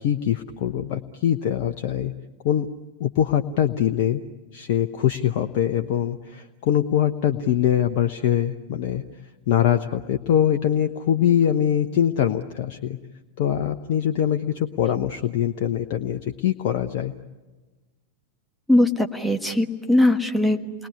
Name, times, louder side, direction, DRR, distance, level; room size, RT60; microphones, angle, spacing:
voice 1, 0.0-2.1 2.4-2.7 3.0-4.2 4.5-9.0 9.5-13.0 13.4-17.1, left 10 dB, 50° left, 7 dB, 0.9 m, -23 dB
voice 2, 18.7-20.9, left 1 dB, ahead, 4 dB, 1.5 m, -20 dB
28.5 x 21.0 x 9.7 m, 1.2 s
figure-of-eight pair, 90°, 0 cm